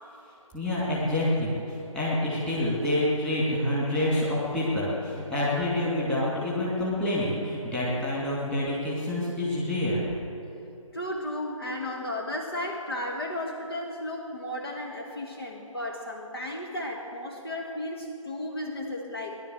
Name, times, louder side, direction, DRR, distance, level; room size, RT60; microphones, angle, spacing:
voice 1, 0.5-10.0, left 1 dB, 5° left, -8 dB, 2.6 m, -27 dB
voice 2, 10.9-19.4, left 1 dB, 45° left, 0 dB, 1.6 m, -34 dB
18.5 x 11.5 x 6.6 m, 2.9 s
figure-of-eight pair, 155°, 18 cm